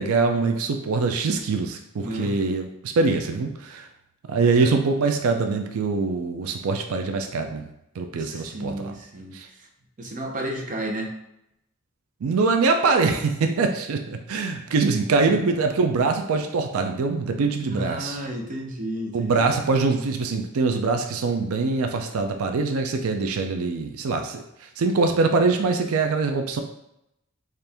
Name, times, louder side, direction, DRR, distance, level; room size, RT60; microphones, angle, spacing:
voice 1, 0.0-3.9 4.3-7.7 8.0-8.9 9.3-9.5 12.2-18.2 19.1-26.6, right 4 dB, 90° right, 5 dB, 0.4 m, -23 dB
voice 2, 2.0-2.3 4.3-4.7 8.2-9.4 10.0-11.1 17.7-19.6, right 1 dB, 40° right, 1 dB, 0.7 m, -32 dB
4.3 x 2.5 x 3.4 m, 0.84 s
head